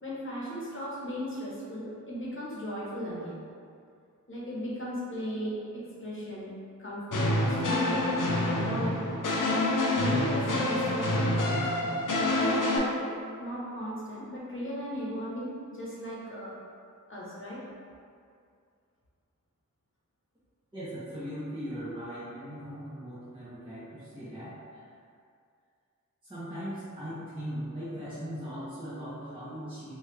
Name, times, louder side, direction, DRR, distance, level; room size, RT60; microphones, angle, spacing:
voice 1, 0.0-3.4 4.3-6.5 6.8-9.2 9.8-11.9 12.4-16.5 17.1-17.6, equal, 40° left, -7 dB, 1.0 m, -36 dB
sound 1, 7.1-12.8, left 1 dB, 75° left, 0.5 m, -27 dB
voice 2, 20.7-24.9 26.2-29.9, equal, 15° right, -13 dB, 1.0 m, -39 dB
3.0 x 2.4 x 3.3 m, 2.3 s
wide cardioid pair, 40°, 32 cm